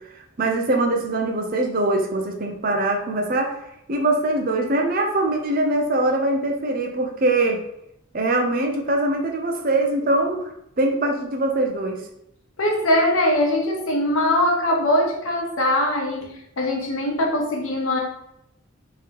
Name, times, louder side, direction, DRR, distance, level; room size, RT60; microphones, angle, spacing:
voice 1, 0.4-3.6 3.9-7.6 8.1-12.0, right 2 dB, 45° right, 3 dB, 0.5 m, -22 dB
voice 2, 12.6-18.0, left 1 dB, 80° left, 0 dB, 1.0 m, -21 dB
3.7 x 2.9 x 3.3 m, 0.78 s
head